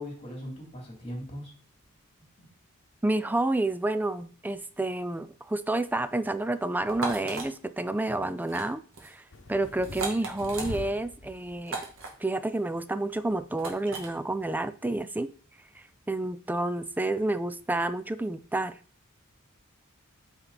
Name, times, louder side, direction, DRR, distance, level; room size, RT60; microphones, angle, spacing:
voice 1, 0.0-1.5 2.4-2.5, left 1 dB, 30° left, -1 dB, 3.1 m, -39 dB
voice 2, 3.0-9.2 9.5-11.8 12.2-15.3 16.1-18.8, right 2 dB, 10° right, 13 dB, 0.4 m, -29 dB
sound 1, 6.9-7.5 8.4-8.7 8.9-9.1 9.8-10.7 11.7-12.1 13.6-14.1, right 4 dB, 65° right, 1.8 m, -36 dB
sound 2, 9.3-11.6 11.9-12.4 12.8-12.9 13.1-13.8 14.2-14.4, left 1 dB, 60° left, 1.1 m, -43 dB
8.8 x 4.4 x 4.1 m, 0.42 s
head